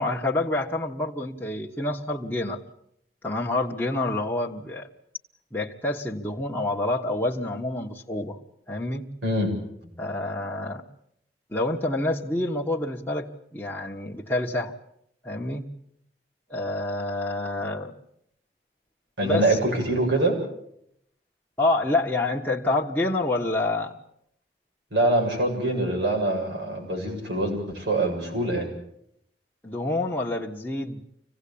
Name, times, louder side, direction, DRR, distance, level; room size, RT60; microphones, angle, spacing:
voice 1, 0.0-2.6 3.2-4.9 5.5-8.4 8.7-9.1 10.0-10.8 11.5-14.7 15.2-15.7 16.5-17.9 19.2-19.6 21.6-24.0 29.6-31.0, left 2 dB, 10° left, -3 dB, 1.4 m, -27 dB
voice 2, 19.2-20.4 24.9-28.7, right 2 dB, 90° right, 1 dB, 7.5 m, -24 dB
25.5 x 17.5 x 8.7 m, 0.75 s
head